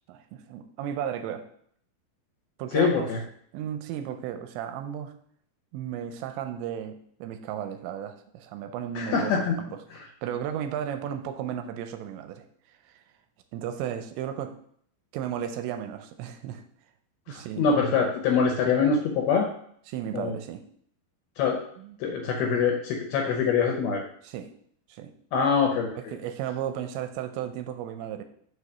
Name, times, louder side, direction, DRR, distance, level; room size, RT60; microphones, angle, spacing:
voice 1, 0.1-1.5 2.6-3.1 3.5-5.2 5.7-9.3 9.6-9.7 10.2-12.5 12.9-13.0 13.5-14.5 15.1-16.6 17.3-17.7 19.9-20.6 21.8-21.9 24.2-24.5 24.9-25.1 26.0-28.2, right 9 dB, 80° right, 8 dB, 2.8 m, -34 dB
voice 2, 2.7-3.2 9.0-9.6 9.9-10.1 17.3-19.5 20.1-20.4 21.4-21.6 22.0-24.0 25.3-26.0, left 5 dB, 75° left, 1 dB, 2.4 m, -24 dB
6.3 x 5.0 x 5.6 m, 0.64 s
omnidirectional pair, 5.3 m